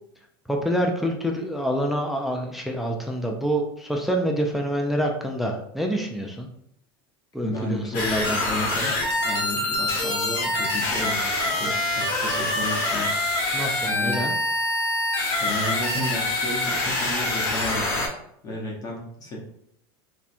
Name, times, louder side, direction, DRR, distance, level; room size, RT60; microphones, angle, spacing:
voice 1, 0.5-6.5 7.3-8.9 13.5-14.3, equal, ahead, 1 dB, 0.3 m, -27 dB
voice 2, 7.4-13.4 13.9-14.2 15.4-18.1 18.4-19.4, left 1 dB, 30° left, -2 dB, 0.8 m, -33 dB
sound 1, 7.9-18.1, left 2 dB, 55° left, 1.0 m, -25 dB
4.2 x 2.2 x 2.5 m, 0.73 s
supercardioid pair, 145°, 13 cm